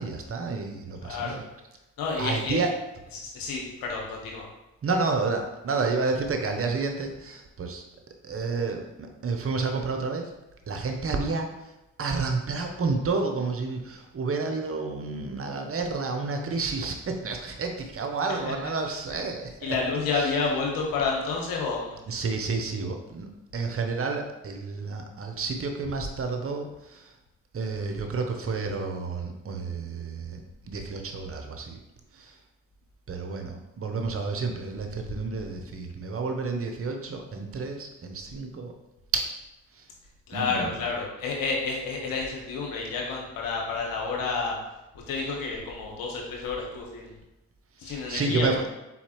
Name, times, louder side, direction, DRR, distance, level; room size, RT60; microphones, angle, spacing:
voice 1, 0.0-1.4 2.2-2.7 4.8-7.8 8.2-10.3 10.7-11.5 12.0-19.7 20.1-20.3 22.1-27.1 27.5-31.8 32.1-32.3 33.1-38.7 39.1-39.3 39.8-39.9 40.3-40.7 47.8-48.6, right 4 dB, 40° right, 4 dB, 0.8 m, -30 dB
voice 2, 1.0-1.4 2.0-2.6 3.1-4.4 18.4-18.5 19.1-19.2 19.6-22.0 40.3-44.5 45.1-47.2 47.8-48.5, left 4 dB, 65° left, -1 dB, 1.2 m, -30 dB
4.2 x 3.9 x 3.0 m, 0.98 s
hypercardioid pair, 45°, 36 cm